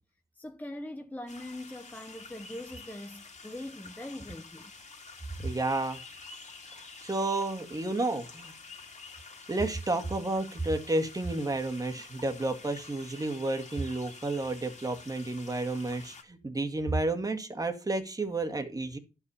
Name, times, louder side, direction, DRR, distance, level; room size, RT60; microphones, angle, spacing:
voice 1, 0.3-4.7, left 1 dB, 10° left, 0.9 m, -42 dB
sound 1, 1.3-16.2, left 4 dB, 40° left, 2.5 m, -49 dB
voice 2, 5.4-6.0 7.0-8.5 9.5-19.0, right 2 dB, 20° right, 2.0 m, -31 dB
11.5 x 5.8 x 5.6 m
cardioid pair, 80°, 17 cm